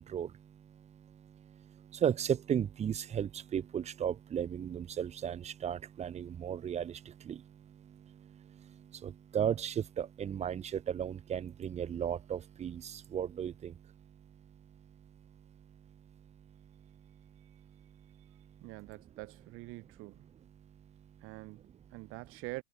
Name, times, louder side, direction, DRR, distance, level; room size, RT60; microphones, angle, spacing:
voice 1, 2.0-6.9 7.3-7.4 9.0-13.7, right 9 dB, 25° right, 1.3 m, -34 dB
voice 2, 18.6-20.3 21.2-22.6, right 24 dB, 50° right, 1.8 m, -45 dB
supercardioid pair, 125°, 29 cm